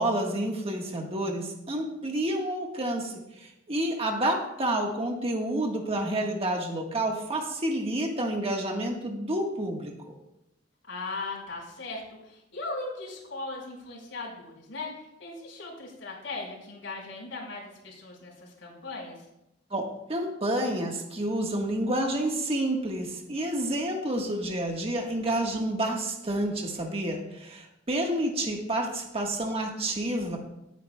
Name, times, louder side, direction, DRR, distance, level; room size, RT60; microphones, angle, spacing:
voice 1, 0.0-10.1 19.7-30.4, right 1 dB, 30° right, 1 dB, 1.4 m, -29 dB
voice 2, 10.9-14.9 15.2-19.2, left 3 dB, 80° left, -3 dB, 4.6 m, -38 dB
18.5 x 9.0 x 2.2 m, 0.86 s
head